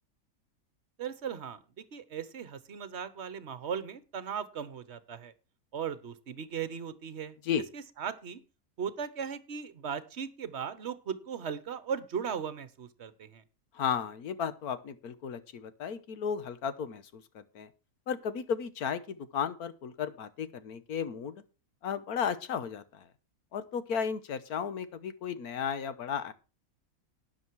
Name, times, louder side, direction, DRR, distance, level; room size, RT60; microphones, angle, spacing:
voice 1, 1.0-1.6 1.9-5.3 5.7-7.3 7.7-8.4 8.8-13.4, right 7 dB, 50° right, 14 dB, 1.2 m, -37 dB
voice 2, 13.7-17.7 18.1-21.4 21.8-23.0 23.5-26.3, left 7 dB, 85° left, 13 dB, 1.5 m, -34 dB
12.5 x 9.4 x 4.7 m, 0.33 s
omnidirectional pair, 1.5 m